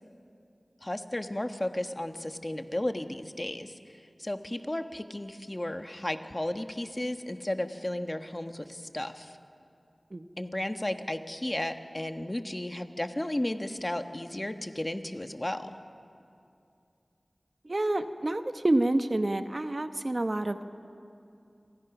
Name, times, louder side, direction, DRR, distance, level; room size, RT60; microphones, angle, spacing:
voice 1, 0.8-3.7 4.2-9.3 10.4-15.8, left 1 dB, 30° left, 7 dB, 1.3 m, -34 dB
voice 2, 17.6-20.6, right 1 dB, 45° right, 9 dB, 1.1 m, -28 dB
29.5 x 25.0 x 6.1 m, 2.5 s
wide cardioid pair, 55°, 0 cm